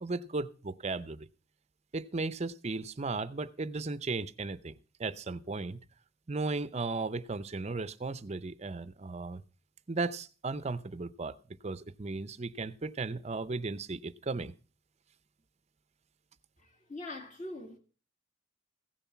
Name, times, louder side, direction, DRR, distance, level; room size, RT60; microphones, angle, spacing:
voice 1, 0.0-1.3 1.9-4.7 5.0-5.8 6.3-9.4 9.9-11.4 11.6-14.5, right 3 dB, 35° right, 0.6 m, -35 dB
voice 2, 16.6-17.8, left 2 dB, 40° left, 2.0 m, -43 dB
16.0 x 7.1 x 5.8 m
head